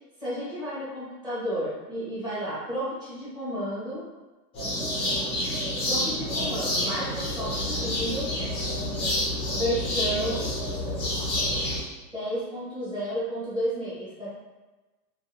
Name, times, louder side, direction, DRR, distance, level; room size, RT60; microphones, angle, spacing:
voice 1, 0.2-4.1 5.9-8.5 9.5-10.5 12.1-14.3, equal, 10° right, -10 dB, 0.9 m, -32 dB
sound 1, 4.5-11.8, left 1 dB, 10° left, 0.5 m, -28 dB
2.6 x 2.1 x 2.8 m, 1.1 s
hypercardioid pair, 135°, 49 cm